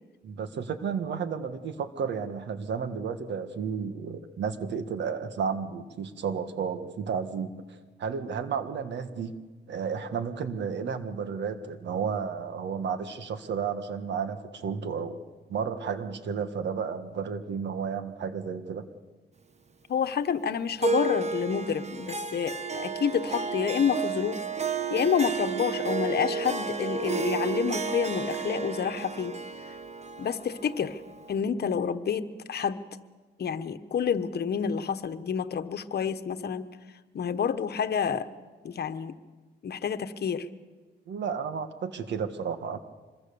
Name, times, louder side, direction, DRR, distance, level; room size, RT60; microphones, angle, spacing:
voice 1, 0.2-7.5 8.0-9.4 9.7-15.2 15.5-18.8 41.1-42.8, right 6 dB, 75° right, 9 dB, 1.6 m, -32 dB
voice 2, 19.9-24.4 24.9-29.4 30.2-31.0 31.3-32.8 33.4-36.7 37.1-38.3 38.6-39.1 39.6-40.5, left 7 dB, 60° left, 9 dB, 1.2 m, -28 dB
Harp, 20.8-31.4, right 5 dB, 35° right, 1.4 m, -32 dB
25.5 x 21.5 x 7.0 m, 1.3 s
cardioid pair, 80°, 18 cm